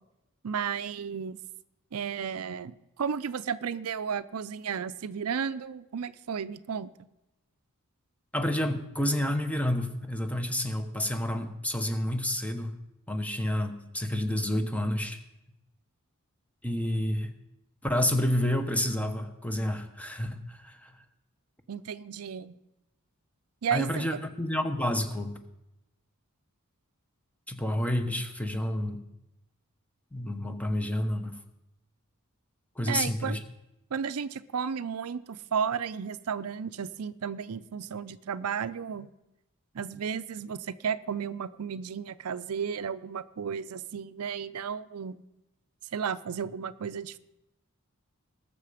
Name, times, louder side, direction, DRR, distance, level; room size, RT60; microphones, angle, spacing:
voice 1, 0.4-1.4 1.9-7.1 21.7-22.5 23.6-24.1 32.9-33.4 33.9-39.1 39.7-45.2 45.9-47.2, right 7 dB, 80° right, 15 dB, 0.5 m, -33 dB
voice 2, 8.3-12.7 13.1-15.2 16.6-17.3 17.8-20.9 23.7-25.4 27.5-29.0 30.1-31.4 32.8-33.4, left 1 dB, 5° left, 7 dB, 1.0 m, -29 dB
19.5 x 6.8 x 5.0 m, 0.92 s
head